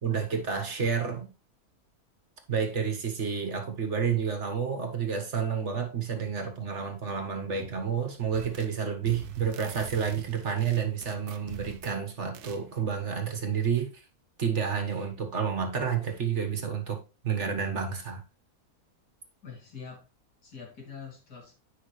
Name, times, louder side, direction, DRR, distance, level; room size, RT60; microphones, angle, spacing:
voice 1, 0.0-1.3 2.5-14.0 14.4-17.0 17.2-18.2, right 7 dB, 50° right, 1.7 m, -30 dB
sound 1, 8.3-8.8 9.0-12.0 12.3-12.6, right 9 dB, 85° right, 1.3 m, -44 dB
voice 2, 19.4-20.1 20.4-21.5, left 6 dB, 90° left, 3.2 m, -44 dB
10.0 x 5.6 x 3.2 m
omnidirectional pair, 1.6 m